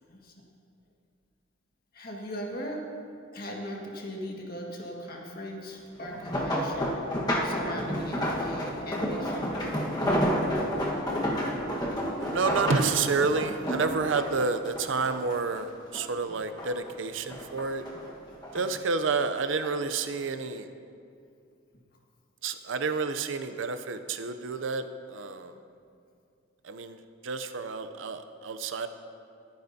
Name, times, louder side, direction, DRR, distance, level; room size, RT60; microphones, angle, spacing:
voice 1, 0.1-0.5 1.9-2.8 3.3-9.5 18.6-18.7, equal, 50° left, -1 dB, 1.8 m, -39 dB
sound 1, 6.0-15.6 15.9-16.9 17.3-18.6 19.4-19.7 20.1-20.2, equal, 20° left, 1.4 m, -30 dB
voice 2, 12.2-17.8 18.5-20.7 22.4-25.5 26.6-28.9, right 4 dB, 70° right, 10 dB, 0.6 m, -29 dB
21.5 x 9.5 x 2.8 m, 2.4 s
head